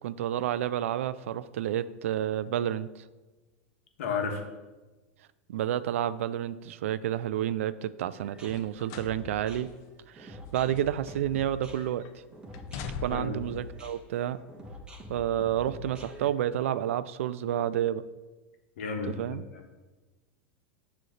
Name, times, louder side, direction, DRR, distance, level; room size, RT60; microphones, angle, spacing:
voice 1, 0.0-2.9 5.5-9.7 10.1-12.1 13.0-14.4 15.1-18.0 19.2-19.4, right 11 dB, 80° right, 16 dB, 0.4 m, -30 dB
voice 2, 4.0-4.4 13.1-13.4 18.8-19.6, left 5 dB, 75° left, 3 dB, 1.3 m, -33 dB
sound 1, 8.1-16.3, left 1 dB, 15° right, 1.2 m, -45 dB
sound 2, 8.4-9.2 9.6-9.7 10.4-11.5 11.8-12.1 12.5-13.5 14.3-14.5, left 5 dB, 50° left, 0.6 m, -42 dB
7.6 x 3.2 x 6.3 m, 1.2 s
hypercardioid pair, 110°, 7 cm